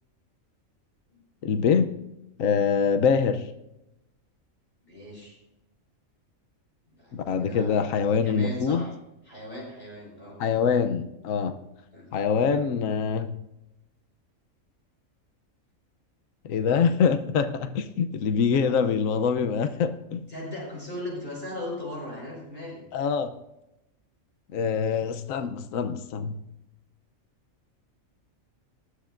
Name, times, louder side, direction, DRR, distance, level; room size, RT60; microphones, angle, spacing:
voice 1, 1.4-1.9 2.4-3.5 7.1-8.8 10.4-11.6 12.1-13.4 16.4-20.3 22.9-23.3 24.5-26.4, left 6 dB, 75° left, 9 dB, 1.2 m, -24 dB
voice 2, 4.8-5.4 7.0-7.9 8.2-8.9 9.3-10.4 11.9-12.1 18.6-18.8 20.3-22.8, left 1 dB, 40° left, -4 dB, 5.4 m, -38 dB
19.5 x 13.0 x 2.6 m, 0.89 s
omnidirectional pair, 1.4 m